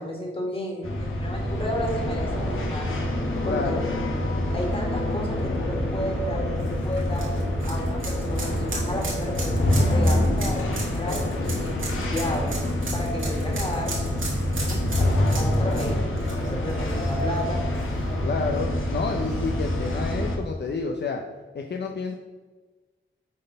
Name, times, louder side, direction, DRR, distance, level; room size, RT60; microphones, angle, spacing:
voice 1, 0.0-3.0 3.4-3.8 4.5-7.3 7.6-12.5 12.9-13.9 14.6-16.0 16.5-17.6, left 1 dB, 25° left, -1 dB, 2.2 m, -33 dB
sound 1, 0.8-20.4, left 1 dB, 90° left, 1.2 m, -26 dB
voice 2, 3.4-3.8 15.6-16.1 18.2-21.2 21.5-22.1, left 4 dB, 60° left, 2 dB, 0.6 m, -30 dB
sound 2, 6.6-17.4 17.8-17.9 19.3-19.4, right 3 dB, 80° right, 2.1 m, -36 dB
7.4 x 4.0 x 5.4 m, 1.3 s
wide cardioid pair, 75°, 20 cm